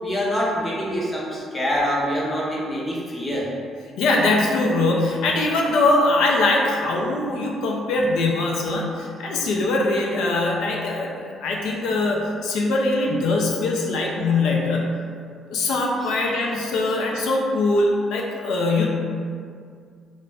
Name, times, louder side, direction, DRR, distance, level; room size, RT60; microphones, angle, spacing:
voice 1, 0.0-3.5, equal, 15° left, -5 dB, 0.5 m, -25 dB
voice 2, 4.0-14.9 15.5-18.9, left 2 dB, 90° left, -1 dB, 0.4 m, -22 dB
2.4 x 2.1 x 3.3 m, 2.2 s
cardioid pair, 170°, 0 cm